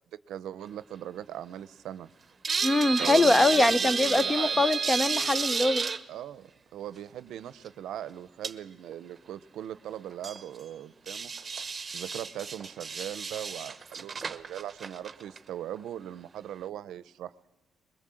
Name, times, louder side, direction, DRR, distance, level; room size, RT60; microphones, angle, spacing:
voice 1, 0.3-2.1 3.0-4.7 6.1-11.3 11.9-17.3, right 11 dB, 80° right, 0.6 m, -39 dB
sound 1, 2.4-6.0 7.7-7.8 8.4-8.5 8.9-9.0 10.1-10.4 11.1-15.4 15.8-15.9, right 5 dB, 35° right, 1.0 m, -31 dB
voice 2, 2.6-5.8, left 2 dB, 15° left, 0.6 m, -23 dB
21.5 x 20.0 x 7.7 m
cardioid pair, 90°, 0 cm